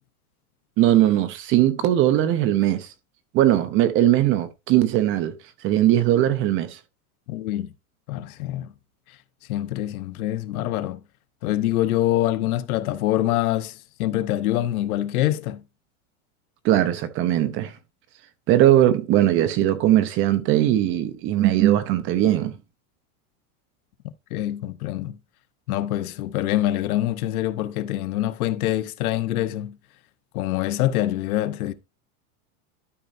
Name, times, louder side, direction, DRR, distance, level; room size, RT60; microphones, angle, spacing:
voice 1, 0.8-2.9 3.3-5.3 5.6-6.8 16.6-17.7 18.5-22.5, right 13 dB, 30° right, 0.7 m, -19 dB
voice 2, 7.3-7.7 8.1-8.7 9.5-11.0 11.4-15.6 24.3-25.2 25.7-29.8 30.3-31.7, left 14 dB, 75° left, 1.0 m, -25 dB
12.5 x 5.2 x 2.6 m
supercardioid pair, 160°, 43 cm